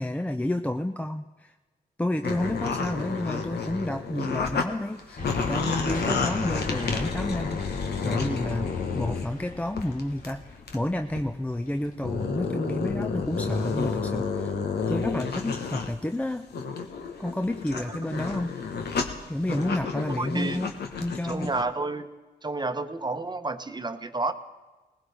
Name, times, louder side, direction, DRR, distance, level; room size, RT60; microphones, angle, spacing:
voice 1, 0.0-1.5 2.0-14.5 14.9-16.5 17.2-18.5 19.3-20.7 21.0-21.5, left 1 dB, 10° left, 7 dB, 0.5 m, -30 dB
sound 1, 2.2-4.7 5.0-9.3 9.8-10.3 10.7-10.8 11.2-11.3 11.9-15.9 16.3-21.6, left 5 dB, 75° left, 1.2 m, -30 dB
sound 2, 5.2-12.2, left 3 dB, 50° left, 1.6 m, -37 dB
voice 2, 20.2-20.6 21.3-22.1 22.4-24.3, right 3 dB, 25° right, 9 dB, 1.0 m, -30 dB
19.5 x 15.5 x 3.5 m, 1.2 s
cardioid pair, 55°, 17 cm